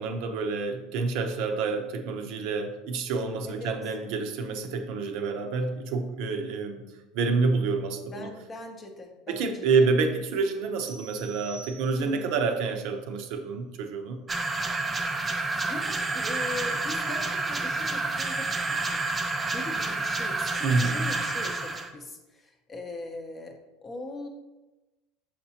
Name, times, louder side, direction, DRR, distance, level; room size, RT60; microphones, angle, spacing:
voice 1, 0.0-6.9 7.1-8.3 9.3-14.2 20.6-21.1, right 4 dB, 60° right, 5 dB, 0.6 m, -28 dB
voice 2, 3.4-3.7 8.1-9.9 11.9-12.4 15.6-19.0 19.4-24.3, left 2 dB, 20° left, 4 dB, 0.7 m, -40 dB
sound 1, 10.8-12.4, right 4 dB, 85° right, 1.0 m, -47 dB
sound 2, 14.3-21.9, right 3 dB, 15° right, 0.4 m, -29 dB
5.9 x 5.7 x 2.8 m, 1.1 s
cardioid pair, 160°, 0 cm